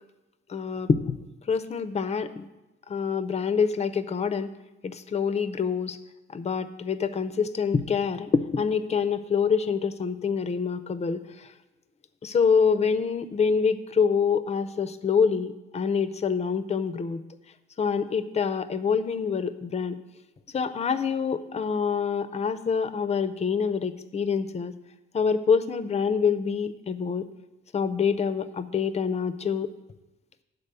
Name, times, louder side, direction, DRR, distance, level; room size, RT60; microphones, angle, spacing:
voice 1, 0.5-1.2 1.5-2.4 2.9-4.5 4.8-6.0 6.3-11.2 12.2-17.2 17.8-20.0 20.5-24.7 25.1-27.2 27.7-29.7, left 6 dB, 30° left, 11 dB, 0.5 m, -26 dB
9.7 x 4.0 x 6.7 m, 1.0 s
wide cardioid pair, 125°, 21 cm